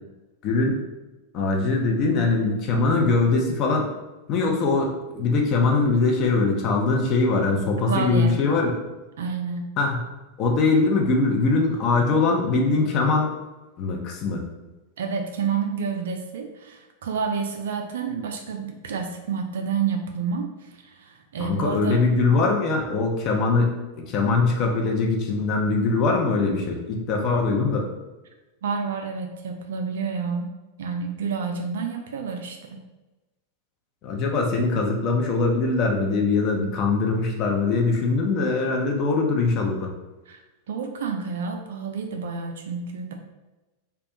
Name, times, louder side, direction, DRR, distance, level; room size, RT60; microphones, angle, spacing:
voice 1, 0.4-0.8 1.3-3.9 4.3-8.7 9.8-10.0 10.4-13.3 13.8-14.4 21.4-27.8 34.0-39.9, left 3 dB, 35° left, 1 dB, 0.5 m, -22 dB
voice 2, 7.9-8.3 9.2-9.7 15.0-22.0 28.6-30.5 30.8-32.8 40.3-40.4 40.7-43.1, right 5 dB, 60° right, 4 dB, 0.3 m, -29 dB
2.3 x 2.2 x 2.8 m, 1.1 s
figure-of-eight pair, 90°, 0 cm